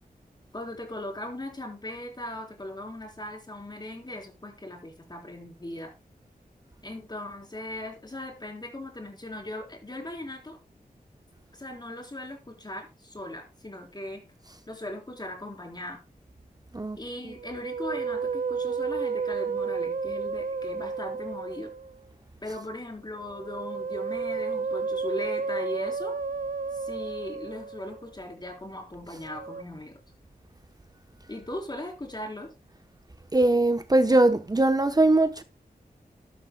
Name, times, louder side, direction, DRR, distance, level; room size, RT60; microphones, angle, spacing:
voice 1, 0.5-5.9 6.8-10.6 11.5-14.2 14.7-16.0 17.0-21.7 22.4-26.1 26.7-30.0 31.3-32.5, left 1 dB, 25° left, 4.0 m, -38 dB
Musical instrument, 17.3-22.0 23.2-28.1 29.2-29.6, right 5 dB, 65° right, 0.6 m, -32 dB
voice 2, 33.3-35.4, right 2 dB, 25° right, 0.9 m, -21 dB
12.5 x 12.0 x 2.2 m
wide cardioid pair, 95°, 16 cm